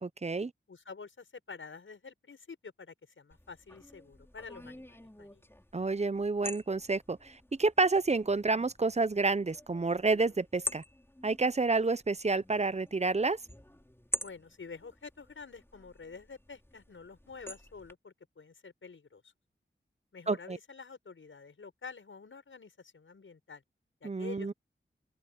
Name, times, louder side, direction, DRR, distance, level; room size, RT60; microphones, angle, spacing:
voice 1, 0.0-0.5 5.7-10.8 11.2-13.4 20.3-20.6 24.0-24.5, right 3 dB, 35° right, 0.8 m, -29 dB
voice 2, 0.7-5.5 14.2-19.3 20.1-23.6 24.0-24.5, left 5 dB, 80° left, 6.6 m, -48 dB
sound 1, 3.3-17.9, left 1 dB, 10° left, 5.7 m, -46 dB
open air
cardioid pair, 45°, 20 cm